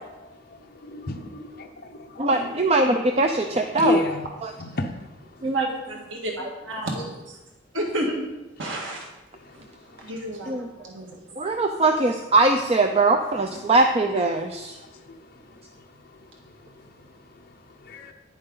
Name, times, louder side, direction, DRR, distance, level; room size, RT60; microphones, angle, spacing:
voice 1, 0.2-2.6 3.4-4.3 4.6-5.4 9.4-10.1 14.0-18.1, left 2 dB, 50° left, 1 dB, 0.8 m, -34 dB
voice 2, 2.2-4.0 4.4-4.5 10.5-10.7 11.4-14.8, right 2 dB, 35° right, 4 dB, 0.6 m, -21 dB
voice 3, 5.4-7.0 7.7-8.3 8.6-9.1 9.5-9.6 10.0-11.4, right 1 dB, 80° right, 0 dB, 1.8 m, -30 dB
11.0 x 10.0 x 3.9 m, 1.0 s
head